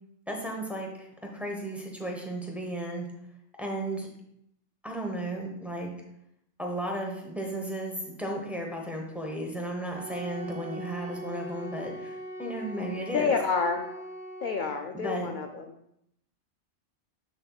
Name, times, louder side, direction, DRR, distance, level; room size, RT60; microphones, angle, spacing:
voice 1, 0.3-1.1 1.3-3.1 3.6-4.1 4.8-5.9 6.6-13.4 14.9-15.3, right 1 dB, ahead, 0 dB, 0.9 m, -34 dB
Wind instrument woodwind instrument, 10.0-14.9, right 1 dB, 30° right, 1.0 m, -41 dB
voice 2, 13.1-13.9 14.4-15.8, left 5 dB, 60° left, 4 dB, 0.6 m, -28 dB
7.4 x 6.4 x 2.3 m, 0.78 s
omnidirectional pair, 1.2 m